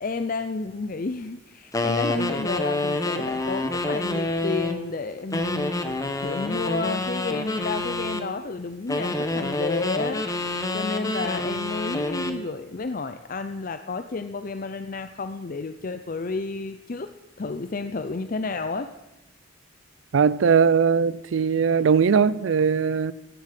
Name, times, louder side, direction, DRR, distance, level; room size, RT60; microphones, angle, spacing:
voice 1, 0.0-5.8 6.2-10.2 10.7-17.1 17.4-18.9, left 3 dB, 45° left, 0.6 m, -31 dB
sound 1, 1.7-4.8 5.3-8.3 8.9-12.4, left 2 dB, 20° left, 1.1 m, -27 dB
voice 2, 20.1-23.1, right 6 dB, 80° right, 0.4 m, -20 dB
16.5 x 7.3 x 7.5 m
head